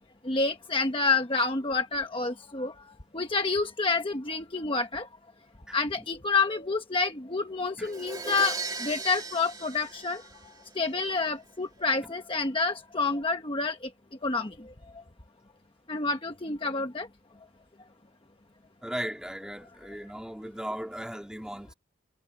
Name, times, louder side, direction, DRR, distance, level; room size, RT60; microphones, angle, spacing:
voice 1, 0.2-2.7 3.1-5.1 5.7-8.6 8.8-10.2 10.8-13.8 14.2-14.5 15.9-17.1, left 3 dB, 25° left, 1.1 m, -28 dB
voice 2, 5.7-6.1 7.8-7.9 12.0-12.1 18.8-21.7, equal, 5° right, 2.9 m, -37 dB
Crash cymbal, 7.9-10.8, right 4 dB, 20° right, 2.5 m, -37 dB
head